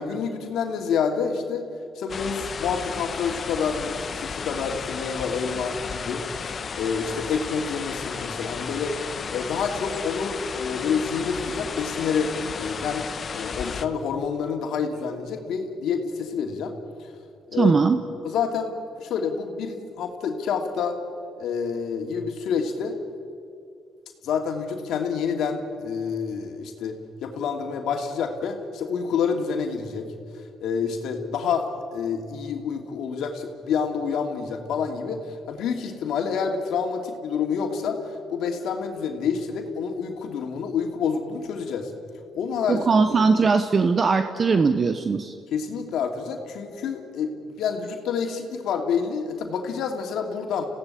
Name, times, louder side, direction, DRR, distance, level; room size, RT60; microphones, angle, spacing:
voice 1, 0.0-1.7 2.0-6.2 6.7-9.0 9.3-16.7 17.0-17.1 17.5-17.7 18.2-21.0 21.4-23.0 24.2-30.1 30.6-41.9 42.3-43.0 45.5-50.7, left 6 dB, 80° left, 4 dB, 2.6 m, -28 dB
Quebrada Las Delicias - Bosque cercano, 2.1-13.9, left 5 dB, 45° left, 1.1 m, -33 dB
voice 2, 17.6-18.0 42.7-45.3, right 4 dB, 40° right, 8 dB, 1.1 m, -20 dB
28.0 x 16.5 x 8.5 m, 2.4 s
cardioid pair, 90°, 0 cm